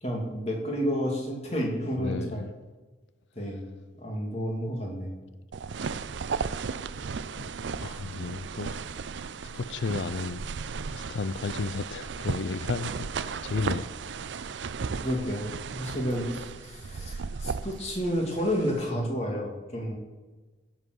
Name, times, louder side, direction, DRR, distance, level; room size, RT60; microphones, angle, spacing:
voice 1, 0.0-2.4 3.4-3.7 4.0-5.1 15.0-20.0, equal, 35° left, 0 dB, 2.7 m, -30 dB
voice 2, 2.0-2.5 7.8-8.8 9.5-10.4 10.9-14.3, left 4 dB, 80° left, 12 dB, 0.5 m, -33 dB
sound 1, 5.5-18.9, right 5 dB, 85° right, 0.5 m, -35 dB
16.0 x 7.5 x 6.3 m, 1.3 s
head